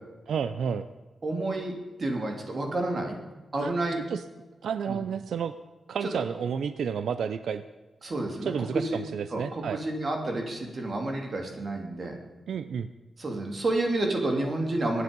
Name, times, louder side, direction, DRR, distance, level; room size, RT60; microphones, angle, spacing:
voice 1, 0.3-0.9 3.6-3.7 4.1-4.2 4.6-5.5 5.9-7.6 8.4-9.8 12.5-12.9, right 7 dB, 90° right, 12 dB, 0.6 m, -30 dB
voice 2, 1.2-3.2 3.5-4.0 4.9-5.0 8.0-9.0 9.3-12.1 13.2-15.0, right 2 dB, 40° right, 2 dB, 2.9 m, -30 dB
23.0 x 9.7 x 5.3 m, 1.2 s
wide cardioid pair, 150°, 0 cm